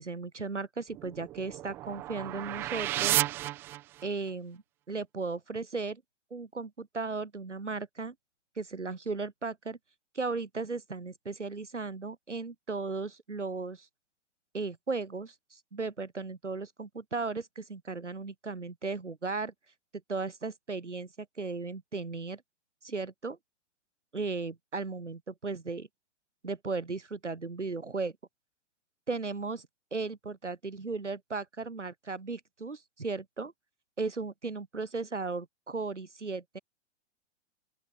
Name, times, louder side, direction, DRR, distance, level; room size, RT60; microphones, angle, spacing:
voice 1, 0.0-3.2 4.0-6.0 6.3-8.1 8.6-9.8 10.1-13.9 14.5-19.5 20.1-21.1 21.4-22.4 22.8-23.4 24.1-25.9 26.4-28.1 29.1-33.5 34.0-36.6, right 4 dB, 80° right, 7.5 m, -36 dB
sound 1, 0.9-4.3, right 15 dB, 5° right, 0.3 m, -33 dB
open air
figure-of-eight pair, 110°, 35 cm